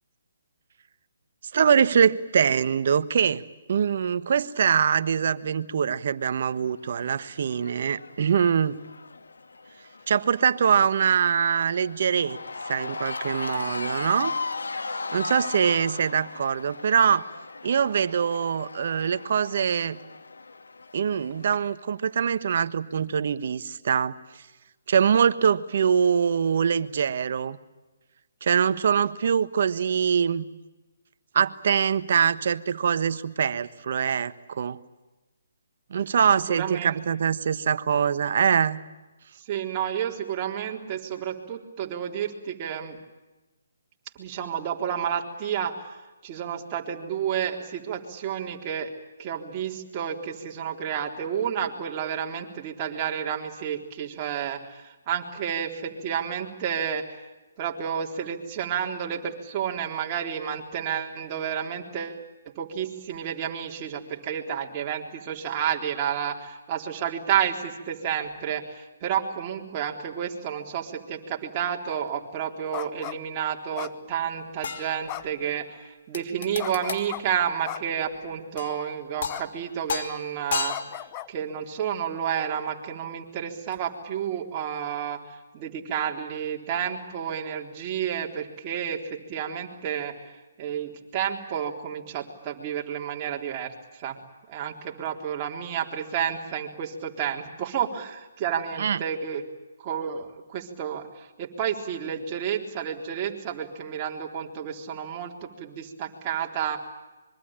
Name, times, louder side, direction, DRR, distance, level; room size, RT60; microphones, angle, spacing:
voice 1, 1.5-3.4 3.7-8.8 10.1-12.4 12.6-14.3 15.1-17.3 17.6-20.0 20.9-24.2 24.9-27.6 28.4-30.5 31.3-34.8 35.9-38.8 98.8-99.0, right 7 dB, 55° right, 13 dB, 1.4 m, -23 dB
Cheering / Crowd, 6.5-21.8, left 3 dB, 85° left, 2.0 m, -37 dB
voice 2, 36.5-37.0 39.3-43.0 44.2-48.9 49.2-57.2 57.6-62.2 62.6-81.0 81.3-94.2 94.5-99.4 99.8-106.8, right 8 dB, 30° right, 1 dB, 3.8 m, -31 dB
sound 1, 72.7-73.2 73.7-74.4 75.1-75.5 76.6-77.2 77.6-78.1 79.3-79.5 79.8-80.0 80.7-81.3, left 14 dB, 25° left, 1.0 m, -37 dB
sound 2, 74.6-75.5 76.1-77.1 78.6-78.9 79.2-79.6 79.9-81.2 83.7-83.8, left 6 dB, 55° left, 2.6 m, -34 dB
25.5 x 23.5 x 9.0 m, 1.1 s
hypercardioid pair, 150°, 0 cm